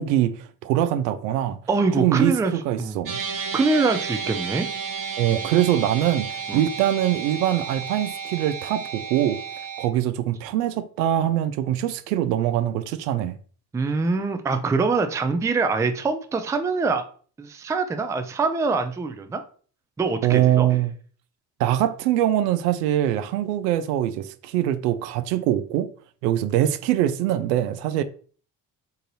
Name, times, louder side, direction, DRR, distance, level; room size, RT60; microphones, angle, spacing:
voice 1, 0.0-1.6 2.0-3.2 5.2-9.4 9.8-13.4 20.2-20.9 21.6-25.9 26.2-28.0, right 12 dB, 70° right, 0.6 m, -23 dB
voice 2, 1.7-2.5 2.8-3.0 3.5-4.7 6.5-6.7 13.7-17.0 17.4-19.4 20.0-20.8, right 4 dB, 5° right, 0.4 m, -24 dB
sound 1, 3.1-9.9, right 6 dB, 40° right, 0.9 m, -32 dB
3.9 x 2.6 x 3.9 m
figure-of-eight pair, 45°, 50 cm